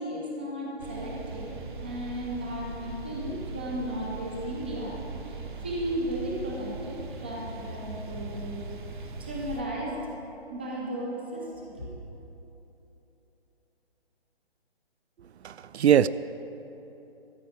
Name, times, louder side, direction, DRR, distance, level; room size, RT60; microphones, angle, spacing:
voice 1, 0.0-1.4 1.8-5.0 5.3-8.6 9.2-10.0 10.5-11.9, equal, 10° right, -3 dB, 0.6 m, -35 dB
sound 1, 0.8-9.6, right 3 dB, 50° right, 1.1 m, -39 dB
voice 2, 15.4-16.1, right 9 dB, 80° right, 16 dB, 0.5 m, -21 dB
13.5 x 5.4 x 8.5 m, 3.0 s
hypercardioid pair, 170°, 32 cm